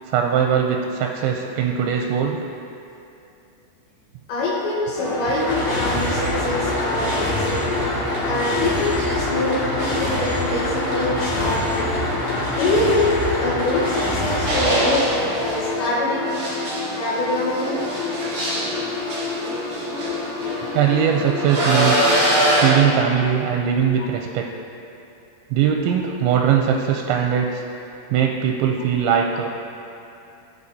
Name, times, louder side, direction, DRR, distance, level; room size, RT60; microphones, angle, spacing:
voice 1, 0.1-2.4 20.7-22.0 22.6-24.5 25.5-27.6 28.1-29.6, right 8 dB, 80° right, 2 dB, 2.8 m, -20 dB
voice 2, 4.3-7.7 8.2-12.0 12.5-16.5 16.9-17.8 29.3-29.4, left 2 dB, 75° left, -6 dB, 3.2 m, -24 dB
sound 1, 4.9-15.8, left 1 dB, 55° left, 3.8 m, -26 dB
sound 2, 5.0-22.8, left 3 dB, 35° left, 2.0 m, -29 dB
sound 3, 14.5-15.6 16.3-20.6 21.5-22.9, right 1 dB, 40° right, 2.7 m, -22 dB
15.5 x 8.2 x 2.8 m, 2.7 s
omnidirectional pair, 5.5 m